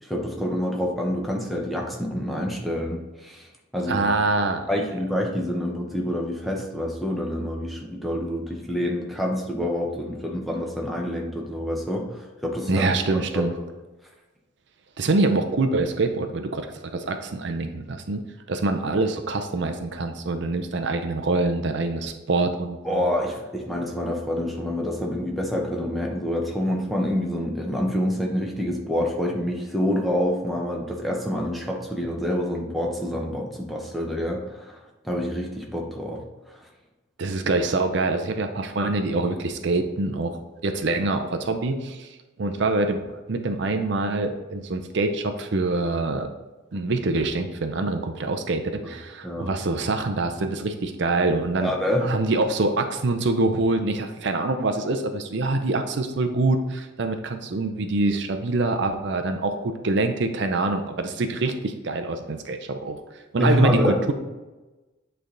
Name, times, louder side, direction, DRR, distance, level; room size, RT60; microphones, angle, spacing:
voice 1, 0.0-4.1 4.7-12.9 13.3-13.5 22.8-36.7 49.2-49.5 51.6-52.1 63.4-64.0, left 1 dB, ahead, -1 dB, 0.8 m, -27 dB
voice 2, 3.9-4.8 12.7-13.5 15.0-18.2 18.5-23.0 37.2-43.0 43.3-46.3 46.7-51.7 52.0-63.0 63.3-64.1, right 2 dB, 55° right, 6 dB, 0.5 m, -25 dB
8.6 x 3.4 x 3.8 m, 1.1 s
head